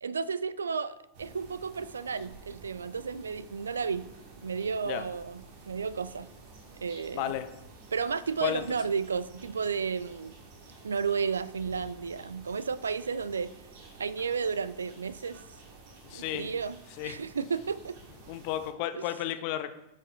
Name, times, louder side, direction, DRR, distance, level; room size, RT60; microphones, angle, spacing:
voice 1, 0.0-4.0 4.4-5.4 5.7-6.3 6.8-7.3 7.9-10.3 10.8-13.5 14.0-15.4 16.1-16.8 17.0-18.0, right 5 dB, 70° right, 18 dB, 0.4 m, -32 dB
sound 1, 1.1-18.7, right 3 dB, 50° right, 1.7 m, -51 dB
voice 2, 7.1-7.5 8.4-8.6 16.0-16.5 17.0-17.2 18.3-19.7, left 12 dB, 45° left, 10 dB, 0.7 m, -33 dB
10.5 x 5.7 x 4.3 m, 0.90 s
figure-of-eight pair, 90°, 0 cm